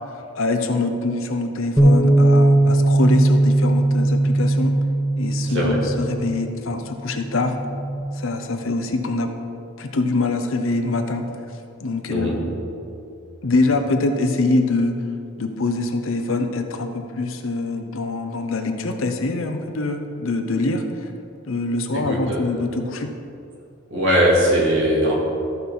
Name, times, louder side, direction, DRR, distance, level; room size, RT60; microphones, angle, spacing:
voice 1, 0.1-4.8 5.2-7.6 8.2-9.3 9.8-11.3 11.8-12.4 13.4-15.0 15.4-20.8 21.5-23.1, left 2 dB, 70° left, 6 dB, 0.8 m, -24 dB
Bass guitar, 1.8-8.0, right 1 dB, 5° left, 1.2 m, -18 dB
voice 2, 22.1-22.4 23.9-25.1, equal, 65° right, -4 dB, 2.4 m, -19 dB
14.0 x 5.5 x 4.2 m, 2.6 s
head